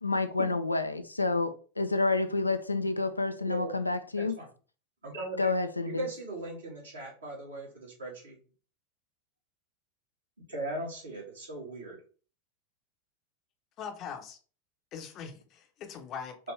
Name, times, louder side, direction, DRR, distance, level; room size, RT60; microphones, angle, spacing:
voice 1, 0.0-4.3 5.4-6.1, left 3 dB, 85° left, 0.4 m, -29 dB
voice 2, 3.4-3.8 4.2-4.5 5.0-5.5 5.9-8.4 10.5-12.0, right 1 dB, 75° right, 2.0 m, -38 dB
voice 3, 13.8-14.4 14.9-16.4, left 7 dB, 40° left, 0.7 m, -41 dB
4.5 x 2.6 x 3.1 m
figure-of-eight pair, 85°, 0 cm